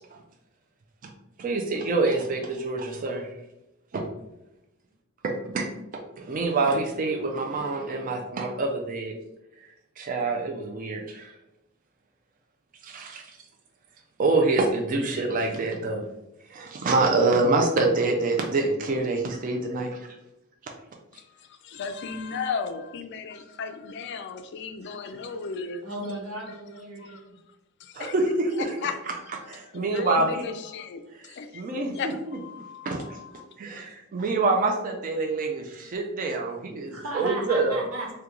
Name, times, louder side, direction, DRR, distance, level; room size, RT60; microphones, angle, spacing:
voice 1, 1.4-3.3 3.9-4.0 5.2-5.7 5.9-9.2 9.6-11.3 12.8-13.4 14.2-16.0 16.5-20.1 27.9-28.7 29.5-30.4 31.5-31.9 32.8-33.2 33.6-37.8, right 3 dB, 40° right, 2 dB, 0.3 m, -26 dB
voice 2, 21.1-25.8 26.5-26.6 27.0-27.2 27.8-28.1 28.8-28.9 29.2-33.4, left 5 dB, 50° left, 7 dB, 0.3 m, -36 dB
voice 3, 25.8-27.4 36.9-38.1, right 2 dB, 85° right, -2 dB, 1.1 m, -35 dB
3.0 x 2.2 x 3.6 m, 0.90 s
head